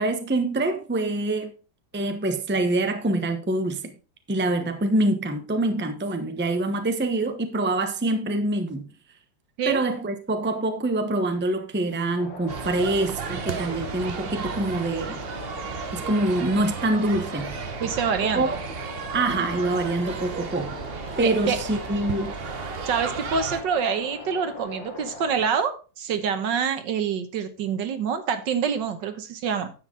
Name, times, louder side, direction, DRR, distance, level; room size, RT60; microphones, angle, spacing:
voice 1, 0.0-1.5 1.9-3.9 4.3-8.9 9.7-15.2 15.9-17.7 18.2-18.6 19.1-20.8 21.2-22.3, right 2 dB, 10° right, 0.7 m, -25 dB
sound 1, 12.2-25.5, left 3 dB, 85° left, 2.6 m, -40 dB
sound 2, 12.5-23.6, right 6 dB, 45° right, 0.8 m, -34 dB
voice 2, 17.8-18.6 21.2-21.6 22.9-29.7, right 6 dB, 75° right, 1.8 m, -26 dB
10.0 x 7.8 x 3.9 m
omnidirectional pair, 2.0 m